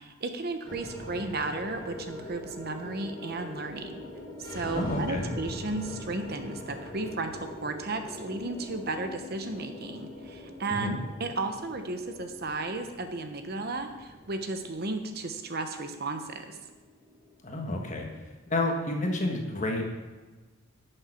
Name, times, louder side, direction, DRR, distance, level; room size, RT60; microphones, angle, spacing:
voice 1, 0.0-4.0 4.4-16.6, right 3 dB, 50° right, 7 dB, 0.9 m, -34 dB
sound 1, 0.7-19.0, left 1 dB, 20° left, 1.8 m, -43 dB
voice 2, 4.7-5.3 10.7-11.0 17.4-18.1 18.5-19.8, left 1 dB, 35° left, 2 dB, 1.4 m, -29 dB
11.0 x 6.6 x 5.9 m, 1.3 s
head